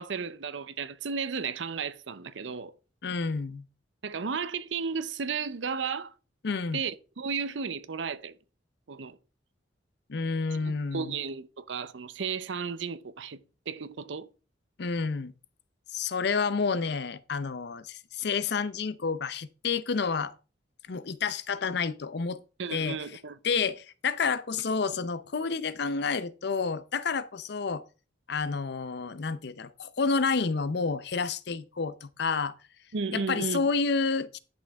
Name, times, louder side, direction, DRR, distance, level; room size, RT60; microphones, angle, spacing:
voice 1, 0.0-2.7 4.0-6.1 6.7-8.4 8.9-9.2 10.5-13.4 13.7-14.3 22.6-23.4 32.9-33.6, right 5 dB, 80° right, 0.7 m, -34 dB
voice 2, 3.0-3.6 6.4-6.8 10.1-11.2 14.8-15.3 15.9-20.3 20.9-22.4 22.7-23.0 23.4-27.8 28.3-32.5 33.1-34.4, left 5 dB, 60° left, 0.6 m, -29 dB
11.0 x 6.3 x 3.5 m
head